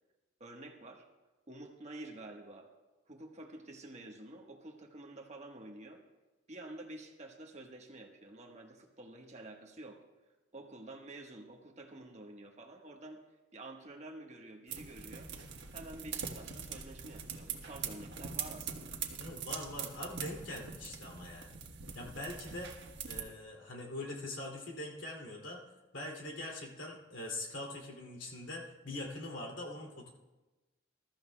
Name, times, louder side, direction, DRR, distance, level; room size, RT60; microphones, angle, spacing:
voice 1, 0.4-1.0 1.5-2.7 3.1-6.0 6.5-10.0 10.5-13.2 13.5-15.3 15.7-19.0, right 2 dB, 35° right, 2 dB, 1.3 m, -49 dB
sound 1, 14.7-23.2, right 7 dB, 60° right, 1.3 m, -43 dB
voice 2, 19.2-21.6 21.9-22.7 23.1-25.6 25.9-30.1, left 1 dB, 70° left, -1 dB, 2.6 m, -43 dB
21.5 x 13.0 x 2.3 m, 1.1 s
head